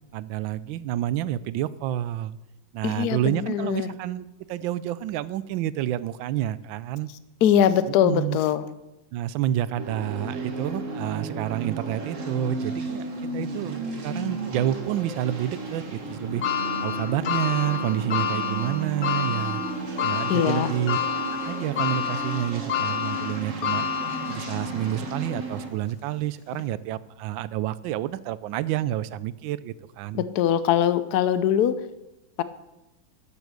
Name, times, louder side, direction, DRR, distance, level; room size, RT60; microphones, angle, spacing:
voice 1, 0.1-2.4 2.7-7.1 7.9-8.4 9.1-16.4 16.8-19.6 20.0-21.0 21.4-23.8 24.3-30.3, right 12 dB, 75° right, 17 dB, 1.3 m, -29 dB
voice 2, 2.8-3.9 7.4-8.7 20.3-20.7 30.1-31.8, left 9 dB, 65° left, 13 dB, 1.1 m, -22 dB
sound 1, 9.8-25.7, right 2 dB, 40° right, 1.7 m, -34 dB
sound 2, 16.4-24.8 25.3-25.4 26.5-26.6, left 8 dB, 85° left, 0.6 m, -29 dB
12.0 x 7.2 x 6.7 m, 0.96 s
omnidirectional pair, 2.2 m